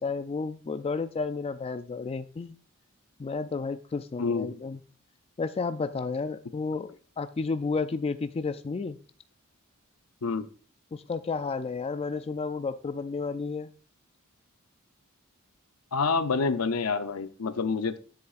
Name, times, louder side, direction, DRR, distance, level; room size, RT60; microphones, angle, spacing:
voice 1, 0.0-2.6 3.2-4.8 5.4-6.9 7.2-9.0 10.9-13.7, left 4 dB, 25° left, 0.3 m, -32 dB
voice 2, 4.2-4.6 10.2-10.5 15.9-18.0, left 4 dB, 80° left, 0.7 m, -27 dB
9.9 x 8.0 x 2.5 m
head